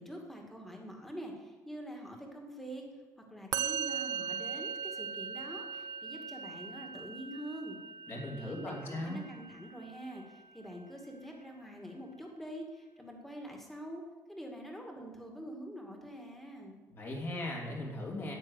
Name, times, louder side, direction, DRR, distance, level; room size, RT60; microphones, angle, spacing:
voice 1, 0.0-2.8 3.3-7.8 8.3-14.0 14.3-16.8, right 1 dB, 5° left, 1 dB, 2.2 m, -45 dB
Musical instrument, 3.5-10.8, right 7 dB, 85° right, 0.7 m, -40 dB
voice 2, 8.1-9.2 16.9-18.3, left 1 dB, 35° left, 0 dB, 3.1 m, -38 dB
10.0 x 9.3 x 8.2 m, 1.3 s
cardioid pair, 165°, 7 cm